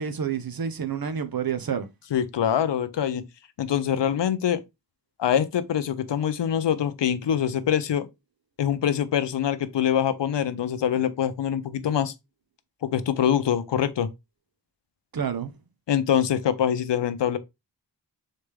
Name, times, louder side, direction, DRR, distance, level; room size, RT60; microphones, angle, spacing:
voice 1, 0.0-1.9 15.1-15.5, right 7 dB, 55° right, 0.8 m, -29 dB
voice 2, 2.1-3.2 3.6-4.6 5.2-8.1 8.6-12.1 12.8-14.1 15.9-17.4, left 9 dB, 85° left, 0.6 m, -24 dB
4.0 x 3.3 x 3.3 m
wide cardioid pair, 60°, 42 cm